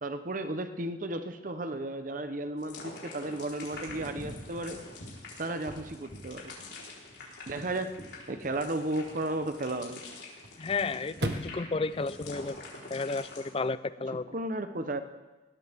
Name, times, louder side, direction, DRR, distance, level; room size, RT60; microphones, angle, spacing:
voice 1, 0.0-4.8 5.4-6.5 7.5-8.0 8.3-10.0 14.3-15.0, right 2 dB, 50° right, 8 dB, 0.9 m, -34 dB
sound 1, 2.6-13.5, left 2 dB, 80° left, 4.1 m, -45 dB
Chirp tweet / Car / Slam, 3.4-13.4, right 1 dB, 70° right, 1.4 m, -45 dB
voice 2, 10.6-12.6 12.9-14.3, left 3 dB, 30° left, 15 dB, 0.5 m, -32 dB
20.5 x 17.0 x 3.6 m, 1.2 s
head